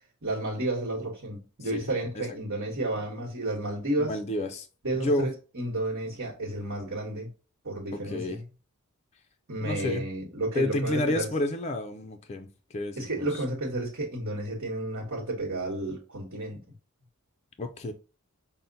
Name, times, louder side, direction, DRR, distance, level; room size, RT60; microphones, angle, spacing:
voice 1, 0.2-4.2 4.8-7.3 7.6-8.4 9.5-11.3 13.0-16.6, right 1 dB, 65° right, 1.2 m, -32 dB
voice 2, 4.0-4.7 4.9-5.3 8.1-8.4 9.6-10.0 10.5-13.3 17.6-17.9, left 1 dB, 30° left, 0.4 m, -30 dB
5.5 x 2.1 x 3.8 m
head